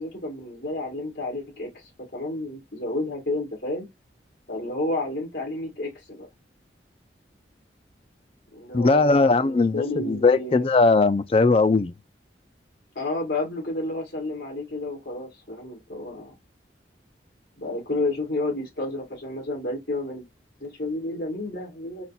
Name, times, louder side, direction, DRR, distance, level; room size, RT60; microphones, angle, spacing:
voice 1, 0.0-3.9 4.5-6.3 8.5-10.6 13.0-16.3 17.6-20.3 20.6-22.0, left 2 dB, 60° left, 2.0 m, -31 dB
voice 2, 8.7-11.9, left 3 dB, 30° left, 0.3 m, -19 dB
4.1 x 2.2 x 4.1 m
head